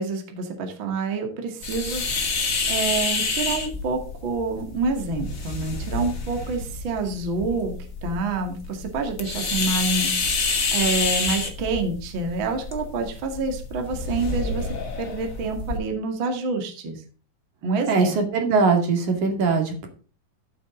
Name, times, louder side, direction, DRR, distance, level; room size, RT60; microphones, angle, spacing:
voice 1, 0.0-2.1 2.7-7.7 8.0-10.1 10.4-14.7 15.0-17.0 17.6-18.1, right 3 dB, 40° right, 4 dB, 2.4 m, -27 dB
sound 1, 1.6-15.8, left 4 dB, 35° left, 1.3 m, -28 dB
voice 2, 17.9-19.9, right 4 dB, 55° right, 4 dB, 3.5 m, -21 dB
14.0 x 7.7 x 3.9 m, 0.39 s
omnidirectional pair, 4.5 m